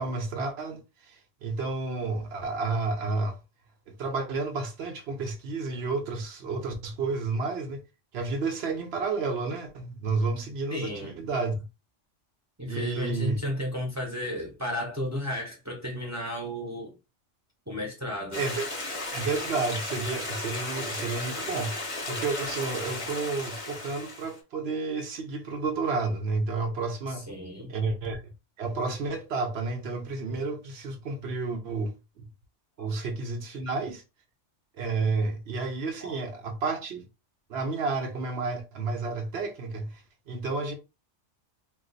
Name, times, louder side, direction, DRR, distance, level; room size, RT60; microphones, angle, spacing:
voice 1, 0.0-3.4 3.9-7.8 8.1-11.6 12.7-13.4 18.4-18.7 19.1-27.3 27.7-28.3 28.6-32.3 32.8-34.0 34.8-37.1 37.5-40.7, right 3 dB, 65° right, 0.9 m, -31 dB
voice 2, 10.7-11.2 12.6-16.9 17.7-18.4 27.3-27.7 32.8-32.9 36.0-36.2, equal, 20° right, 0.6 m, -33 dB
Stream, 18.3-24.4, left 2 dB, 30° left, 0.8 m, -35 dB
2.4 x 2.4 x 3.8 m
omnidirectional pair, 1.2 m